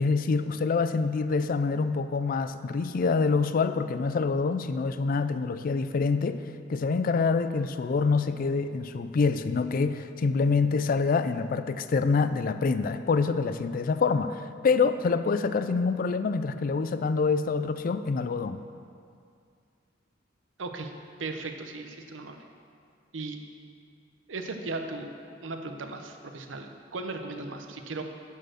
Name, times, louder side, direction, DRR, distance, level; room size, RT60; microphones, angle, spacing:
voice 1, 0.0-6.4 6.7-18.6, left 4 dB, 50° left, 11 dB, 0.4 m, -26 dB
voice 2, 20.6-20.9 21.2-22.4 23.1-23.4 24.3-25.1 25.4-28.0, right 3 dB, 85° right, 5 dB, 0.8 m, -37 dB
11.0 x 4.6 x 6.3 m, 2.3 s
head